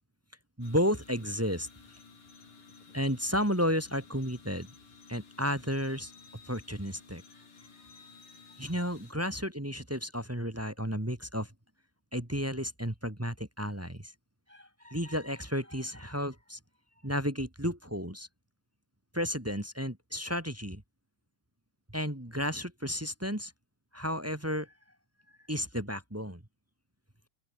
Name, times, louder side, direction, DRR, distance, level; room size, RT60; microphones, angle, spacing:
sound 1, 0.6-9.1, left 4 dB, 85° left, 7.4 m, -55 dB
voice 1, 0.6-1.7 2.9-4.7 5.1-6.1 6.5-7.2 8.6-11.5 12.1-14.1 14.5-16.6 17.0-18.3 19.1-20.8 21.9-23.5 23.9-24.7 25.5-26.4, equal, 5° right, 1.2 m, -32 dB
open air
omnidirectional pair, 3.7 m